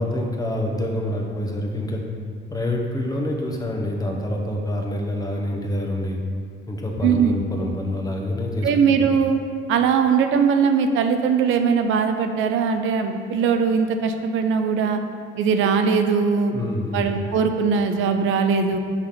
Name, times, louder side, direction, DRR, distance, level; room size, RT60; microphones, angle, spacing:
voice 1, 0.0-2.0 2.5-6.2 6.7-8.7 9.0-9.1 16.5-17.1, left 1 dB, 20° left, 0 dB, 0.9 m, -26 dB
voice 2, 7.0-7.4 8.6-9.4 9.7-15.0 15.4-16.5 16.9-18.8, right 6 dB, 85° right, 6 dB, 0.5 m, -20 dB
5.7 x 3.5 x 5.8 m, 2.1 s
cardioid pair, 90°, 20 cm